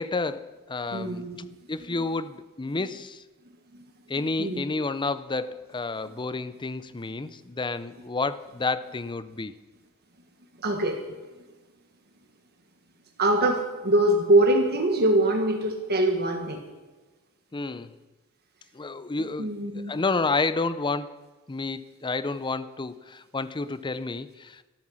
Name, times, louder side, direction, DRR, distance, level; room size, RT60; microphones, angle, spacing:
voice 1, 0.0-1.2 1.7-3.2 4.1-9.5 17.5-17.9 18.7-19.5 19.9-21.2 21.5-24.6, left 3 dB, 20° left, 0.5 m, -30 dB
voice 2, 0.9-1.5 2.7-2.9 4.4-4.6 10.6-11.0 13.2-16.6 19.4-19.9, right 1 dB, 45° right, 1.4 m, -23 dB
13.5 x 13.0 x 6.3 m
head